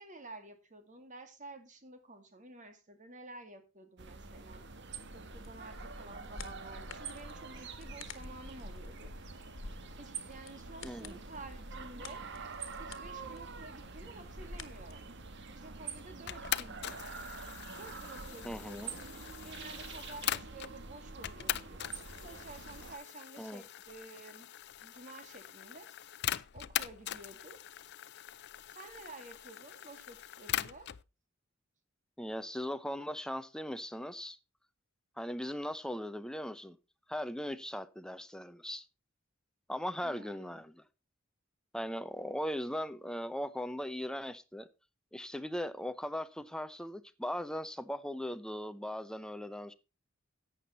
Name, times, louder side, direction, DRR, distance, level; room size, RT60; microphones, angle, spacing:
voice 1, 0.0-4.7 5.1-9.1 10.0-12.3 12.8-15.2 15.5-17.0 17.7-18.9 19.4-21.8 22.2-24.5 24.8-25.9 26.5-27.6 28.7-30.9 40.0-40.6, right 2 dB, 40° right, 2.1 m, -51 dB
sound 1, 4.0-23.0, right 4 dB, 60° right, 1.3 m, -46 dB
sound 2, 5.3-14.9, left 3 dB, 75° left, 1.4 m, -50 dB
voice 2, 10.8-11.2 18.4-18.9 23.4-23.6 32.2-34.4 35.2-36.8 37.1-38.8 39.7-40.8 41.7-44.7 45.1-49.7, equal, 5° left, 0.7 m, -39 dB
sound 3, 16.3-20.7 21.2-31.0, left 12 dB, 55° left, 0.5 m, -41 dB
11.5 x 8.6 x 4.3 m
head